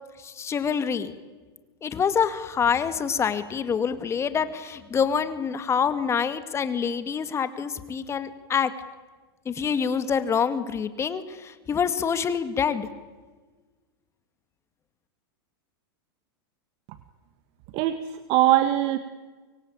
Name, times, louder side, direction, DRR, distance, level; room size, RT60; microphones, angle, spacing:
voice 1, 0.2-1.1 1.8-8.7 9.5-12.9, left 7 dB, 20° left, 11 dB, 2.1 m, -26 dB
voice 2, 17.7-19.0, right 13 dB, 50° right, 11 dB, 1.5 m, -22 dB
25.5 x 22.5 x 8.8 m, 1.3 s
hypercardioid pair, 125°, 12 cm